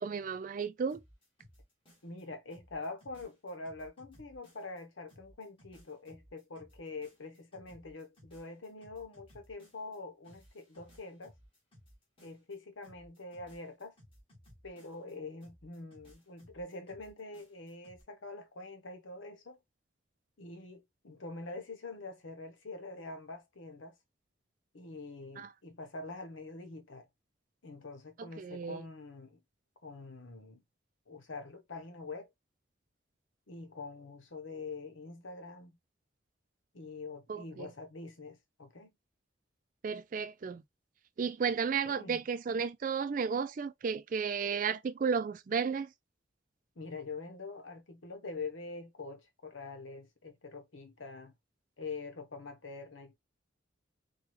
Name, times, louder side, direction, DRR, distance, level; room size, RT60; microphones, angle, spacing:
voice 1, 0.0-1.0 25.4-25.5 28.4-28.8 37.3-37.7 39.8-40.6 41.2-45.9, right 6 dB, 45° right, 0.3 m, -33 dB
sound 1, 0.9-2.2 2.5-4.8 5.1-10.0 10.2-12.6 12.8-15.1 15.4-18.0, equal, 30° left, 1.9 m, -60 dB
voice 2, 2.0-11.3 12.2-13.9 14.6-19.6 20.4-24.0 24.7-27.1 27.6-29.4 29.8-30.6 31.1-32.3 33.5-35.8 36.7-38.9 41.8-42.2 46.8-51.3 51.8-53.1, left 3 dB, 90° left, 0.9 m, -45 dB
4.6 x 2.3 x 3.1 m
head